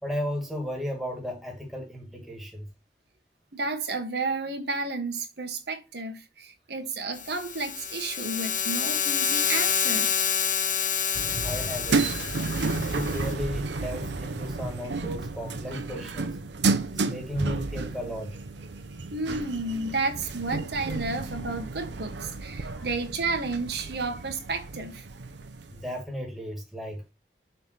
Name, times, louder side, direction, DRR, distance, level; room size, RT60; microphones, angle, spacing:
voice 1, 0.0-2.7 11.4-12.2 12.7-16.4 16.9-18.4 22.8-22.9 25.7-27.1, equal, ahead, 1.8 m, -35 dB
voice 2, 3.5-10.1 19.1-25.1, right 3 dB, 70° right, 1.7 m, -32 dB
sound 1, 7.2-13.3, left 8 dB, 45° left, 1.2 m, -28 dB
sound 2, 11.1-25.9, right 3 dB, 90° right, 0.8 m, -32 dB
7.0 x 3.4 x 6.2 m
head